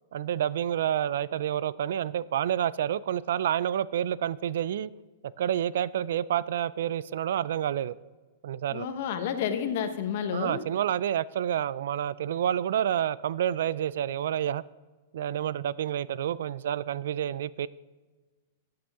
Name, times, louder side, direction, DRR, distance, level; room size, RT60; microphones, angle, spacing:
voice 1, 0.1-4.9 5.4-8.0 8.4-8.9 10.3-14.6 15.1-17.7, right 10 dB, 70° right, 20 dB, 0.3 m, -29 dB
voice 2, 8.7-10.6, left 8 dB, 55° left, 8 dB, 1.1 m, -30 dB
13.5 x 7.7 x 3.6 m, 1.3 s
supercardioid pair, 155°, 0 cm